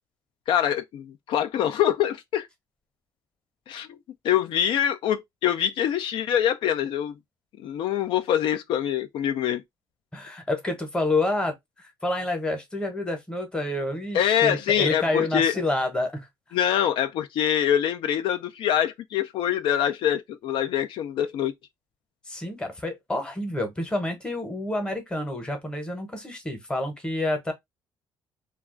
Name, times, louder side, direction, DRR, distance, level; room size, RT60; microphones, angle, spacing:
voice 1, 0.5-2.5 3.7-4.0 4.2-7.2 7.6-9.6 14.1-15.5 16.5-21.5, left 10 dB, 70° left, 0.4 m, -24 dB
voice 2, 10.1-16.3 22.3-27.5, left 2 dB, 10° left, 0.8 m, -28 dB
2.3 x 2.3 x 3.5 m
cardioid pair, 155°, 9 cm